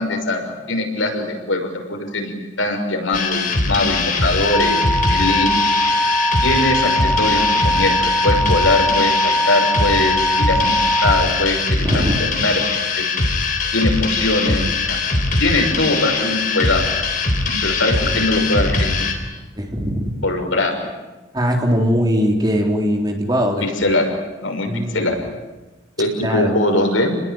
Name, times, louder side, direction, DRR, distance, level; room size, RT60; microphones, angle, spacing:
voice 1, 0.0-5.5 6.4-10.8 11.0-12.6 13.0-13.1 13.7-15.0 15.4-16.9 17.6-19.0 20.2-20.7 23.6-24.1 24.4-25.2 26.0-27.1, left 2 dB, 85° left, 3 dB, 6.3 m, -21 dB
sound 1, 3.1-19.1, left 3 dB, 45° left, 3.9 m, -21 dB
sound 2, 4.5-11.3, equal, 10° left, 2.1 m, -20 dB
voice 2, 11.8-12.3 18.1-18.2 19.6-20.2 21.3-23.7 24.7-25.1 26.2-26.5, equal, 20° right, 1 dB, 3.9 m, -20 dB
29.5 x 21.0 x 9.2 m, 1.1 s
head